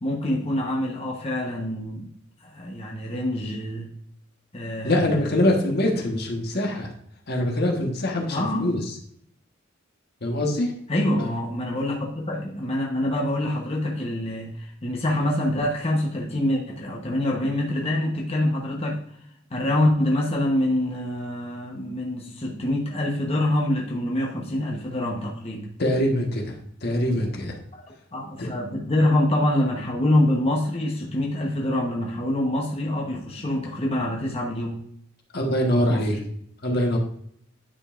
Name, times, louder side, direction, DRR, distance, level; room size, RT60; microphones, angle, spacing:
voice 1, 0.0-2.1 2.5-3.9 4.5-5.5 8.3-8.7 10.9-19.0 19.5-25.7 28.1-34.8 35.9-36.1, left 1 dB, 30° left, -2 dB, 1.1 m, -25 dB
voice 2, 4.8-6.9 7.3-8.8 10.2-10.7 25.8-26.5 26.8-27.6 28.4-28.5 35.3-36.2 36.6-37.0, left 1 dB, 55° left, 1 dB, 1.3 m, -23 dB
9.8 x 5.4 x 2.5 m, 0.67 s
head